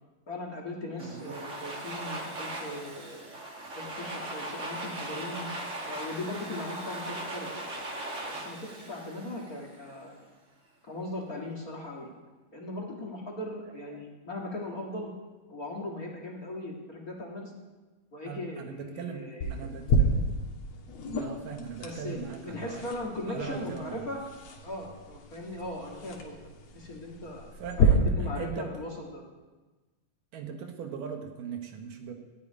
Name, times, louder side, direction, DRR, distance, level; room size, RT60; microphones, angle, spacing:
voice 1, 0.3-3.3 3.7-5.5 5.9-7.7 8.3-10.3 10.8-12.1 12.5-15.1 15.5-17.5 18.1-20.3 21.8-24.2 24.6-26.4 26.7-27.5 27.8-29.2, left 1 dB, 35° left, 0 dB, 1.5 m, -39 dB
Domestic sounds home sounds, 1.0-9.9, right 1 dB, 45° right, 1.0 m, -39 dB
voice 2, 1.0-1.4 12.0-12.1 13.6-14.0 18.2-19.9 21.1-22.9 23.3-24.1 27.6-28.7 30.3-32.1, right 6 dB, 70° right, 5 dB, 2.6 m, -40 dB
sound 1, 19.4-27.8, left 1 dB, 55° left, 2.3 m, -32 dB
14.0 x 6.9 x 9.7 m, 1.2 s
omnidirectional pair, 4.1 m